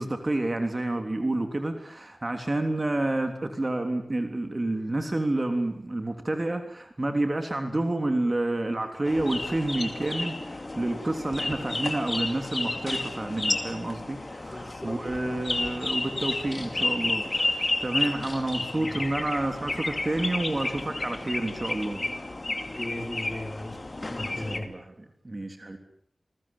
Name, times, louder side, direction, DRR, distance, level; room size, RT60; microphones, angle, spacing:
voice 1, 0.0-22.0 24.2-25.8, right 2 dB, 40° right, 6 dB, 3.4 m, -29 dB
sound 1, 9.1-24.6, left 2 dB, 40° left, 2.5 m, -32 dB
voice 2, 14.5-14.9 15.2-15.3 22.6-23.7 24.1-24.6, left 1 dB, 20° left, 3 dB, 5.9 m, -36 dB
27.5 x 20.5 x 7.5 m, 0.63 s
wide cardioid pair, 55°, 0 cm